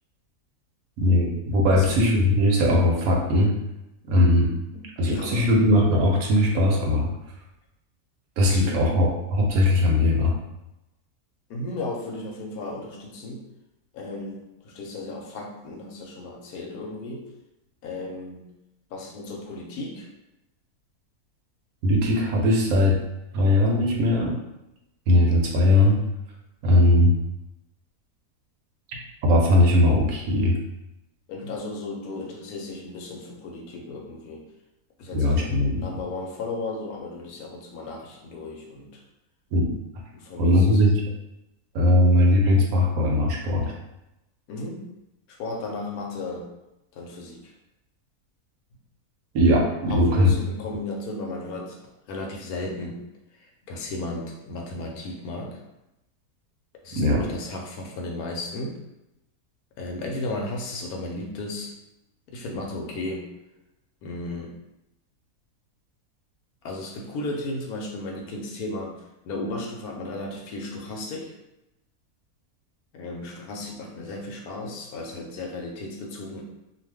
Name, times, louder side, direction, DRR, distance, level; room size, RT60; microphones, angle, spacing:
voice 1, 1.0-3.5 4.1-4.5 5.0-7.1 8.4-10.3 21.8-23.0 23.3-24.3 25.1-26.0 26.6-27.1 29.2-30.6 35.1-35.8 39.5-39.7 40.4-40.9 41.7-43.7 49.3-50.3 57.0-57.2, left 1 dB, 70° right, -1 dB, 1.0 m, -19 dB
voice 2, 4.7-5.5 8.5-8.9 11.5-13.4 13.9-17.3 17.8-18.4 18.9-20.1 31.3-34.5 35.0-39.0 40.1-40.8 44.5-44.9 45.3-46.5 46.9-47.5 49.9-51.8 52.1-53.0 53.3-55.6 56.8-58.8 59.8-61.7 62.3-63.3 64.0-64.5 66.6-71.3 72.9-76.4, left 2 dB, 75° left, 1 dB, 1.0 m, -35 dB
2.5 x 2.3 x 3.3 m, 0.91 s
omnidirectional pair, 1.6 m